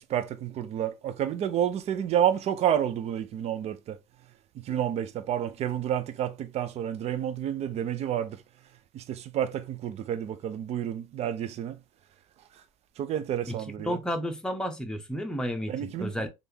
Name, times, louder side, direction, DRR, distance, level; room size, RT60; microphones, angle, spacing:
voice 1, 0.1-4.0 4.6-8.4 8.9-11.8 13.0-14.0 15.7-16.3, right 10 dB, 50° right, 0.5 m, -29 dB
voice 2, 13.8-16.3, equal, 5° left, 0.8 m, -32 dB
3.4 x 2.5 x 2.8 m
supercardioid pair, 100°, 14 cm